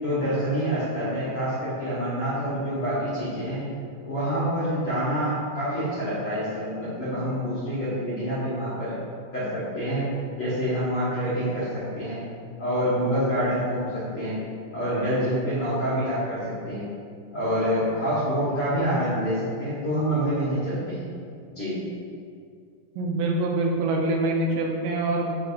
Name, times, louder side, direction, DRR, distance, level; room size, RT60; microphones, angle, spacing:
voice 1, 0.0-3.6 4.0-8.9 9.3-10.0 10.4-11.7 11.9-12.2 12.6-14.4 14.7-16.9 17.3-21.0 21.5-21.8, equal, 50° left, -11 dB, 1.9 m, -27 dB
voice 2, 23.0-25.4, right 2 dB, 80° right, 0 dB, 2.3 m, -25 dB
10.5 x 4.2 x 2.7 m, 2.2 s
omnidirectional pair, 4.5 m